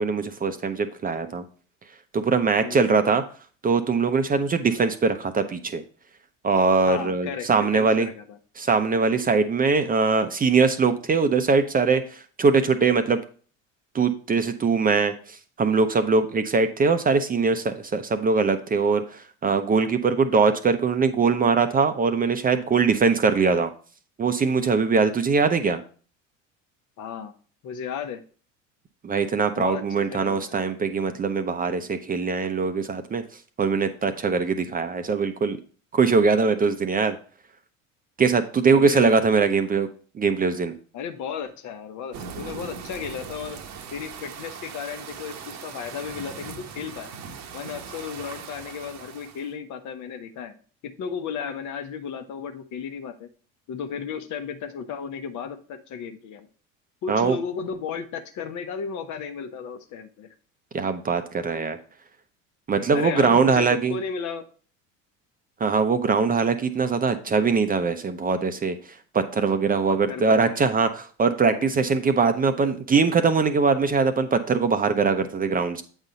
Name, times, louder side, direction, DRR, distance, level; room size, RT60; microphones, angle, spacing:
voice 1, 0.0-1.4 2.1-3.2 3.6-5.8 6.4-8.1 8.6-13.2 13.9-23.7 24.2-25.8 29.0-33.2 33.6-35.6 35.9-37.2 38.2-39.9 40.1-40.7 57.1-57.4 60.7-61.8 62.7-64.0 65.6-75.8, right 4 dB, 25° right, 9 dB, 0.6 m, -22 dB
voice 2, 2.6-3.1 6.8-7.5 7.7-8.4 27.0-27.3 27.6-28.2 29.6-30.6 38.7-39.2 40.9-43.6 43.9-47.1 47.5-50.6 50.8-53.3 53.7-56.5 57.0-60.3 62.9-64.4 69.4-69.5 69.9-70.6 71.5-71.7, left 6 dB, 50° left, 8 dB, 1.0 m, -34 dB
sound 1, 42.1-49.5, right 6 dB, 50° right, 1.0 m, -40 dB
8.0 x 4.1 x 3.9 m, 0.42 s
hypercardioid pair, 75°, 38 cm